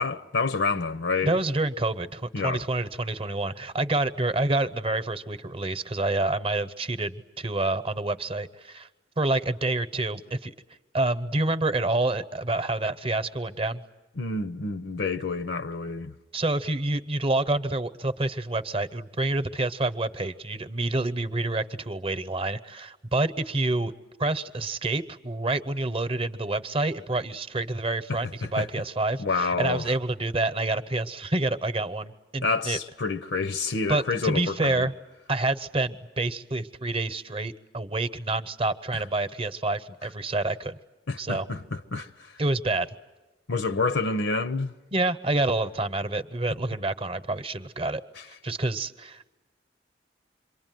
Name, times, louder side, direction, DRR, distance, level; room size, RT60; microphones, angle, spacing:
voice 1, 0.0-1.3 2.3-2.6 14.2-16.1 28.1-28.2 28.6-28.7 29.2-29.8 32.4-34.8 41.1-42.3 43.5-44.7 48.2-48.3, left 4 dB, 85° left, 0.9 m, -28 dB
voice 2, 1.2-8.9 9.2-10.5 10.9-13.8 16.3-23.9 24.2-32.8 33.9-34.9 35.3-40.8 41.2-41.5 42.4-42.9 44.9-48.0 48.4-49.3, right 2 dB, 30° right, 0.9 m, -28 dB
27.5 x 23.5 x 9.3 m
head